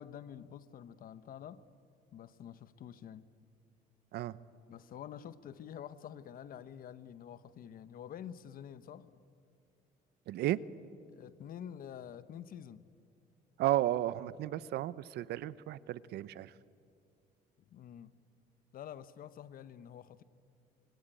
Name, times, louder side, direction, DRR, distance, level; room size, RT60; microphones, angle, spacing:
voice 1, 0.0-1.6 2.1-3.3 4.7-9.2 11.1-12.8 17.7-18.1 18.7-20.2, left 9 dB, 55° left, 14 dB, 1.1 m, -48 dB
voice 2, 10.3-10.6 13.6-16.5, right 14 dB, 75° right, 18 dB, 0.8 m, -33 dB
25.5 x 23.0 x 9.1 m, 2.3 s
cardioid pair, 110°, 17 cm